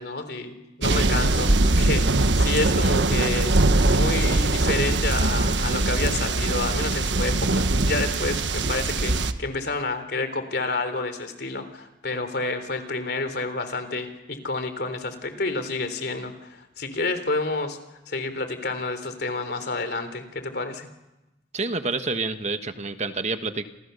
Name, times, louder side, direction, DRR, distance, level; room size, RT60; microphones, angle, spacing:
voice 1, 0.0-3.6 3.9-17.8 18.1-20.9, left 3 dB, 60° left, 9 dB, 3.5 m, -29 dB
sound 1, 0.8-9.3, right 2 dB, 80° right, 1.3 m, -22 dB
voice 2, 21.5-23.6, right 3 dB, 40° right, 8 dB, 1.4 m, -28 dB
29.0 x 28.0 x 6.9 m, 0.99 s
head